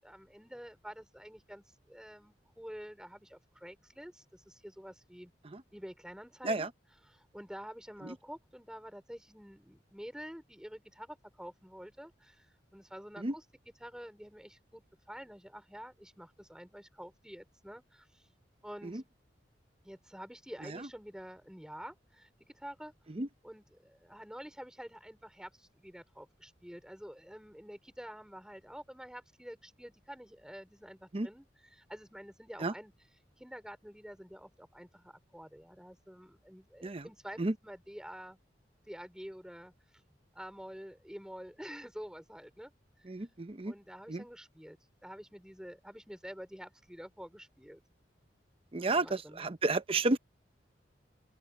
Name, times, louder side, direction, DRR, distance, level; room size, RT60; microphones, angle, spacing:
voice 1, 0.0-5.3 5.7-6.7 7.0-13.4 13.8-18.3 18.6-19.0 19.8-22.9 23.4-32.9 33.4-38.4 38.9-39.7 40.3-42.7 43.6-47.8 48.8-49.4, equal, 5° right, 5.3 m, -48 dB
voice 2, 43.1-43.7 44.1-44.2 48.7-50.2, right 2 dB, 30° right, 0.8 m, -32 dB
open air
head